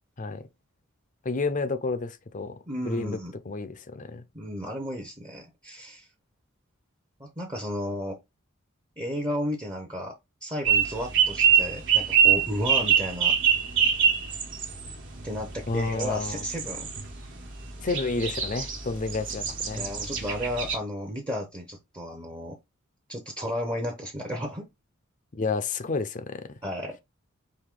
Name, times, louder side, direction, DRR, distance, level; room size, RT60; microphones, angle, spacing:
voice 1, 1.2-2.6 2.8-3.2 3.5-4.2 15.7-16.4 17.8-19.8 25.3-26.5, left 3 dB, 35° left, 0.5 m, -30 dB
voice 2, 2.7-3.3 4.3-6.1 7.2-8.2 9.0-10.1 10.4-13.3 15.2-16.9 19.7-22.6 23.1-24.7 26.6-27.0, equal, 20° right, 0.8 m, -33 dB
sound 1, 10.6-20.8, right 8 dB, 60° right, 1.3 m, -25 dB
4.8 x 2.7 x 3.7 m
head